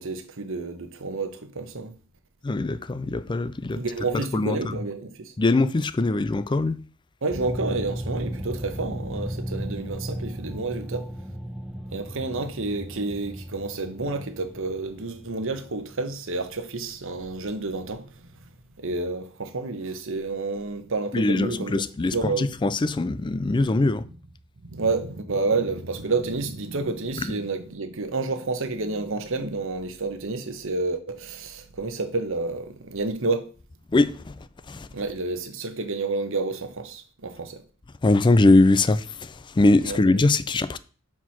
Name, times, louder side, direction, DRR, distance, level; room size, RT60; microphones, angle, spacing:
voice 1, 0.0-1.9 3.7-5.3 7.2-11.1 11.9-18.1 18.8-21.8 22.1-22.5 24.6-33.5 34.9-37.6 39.8-40.0, right 3 dB, 65° right, 1.0 m, -29 dB
voice 2, 2.4-3.8 4.3-4.8 5.4-6.8 21.1-24.0 33.9-34.3 34.7-34.9 38.0-40.8, left 2 dB, 20° left, 0.4 m, -22 dB
sound 1, 7.3-18.3, equal, 5° right, 0.8 m, -36 dB
6.0 x 4.7 x 5.7 m
head